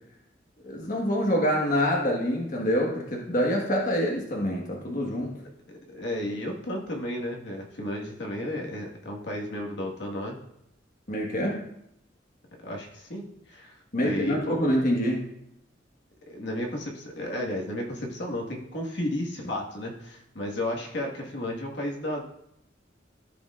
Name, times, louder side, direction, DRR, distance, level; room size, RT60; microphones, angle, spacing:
voice 1, 0.6-5.4 11.1-11.6 13.9-15.2, equal, 45° left, -2 dB, 1.4 m, -26 dB
voice 2, 5.7-10.4 12.6-14.6 16.3-22.2, left 1 dB, 65° left, -1 dB, 1.6 m, -33 dB
14.0 x 6.9 x 2.5 m, 0.75 s
head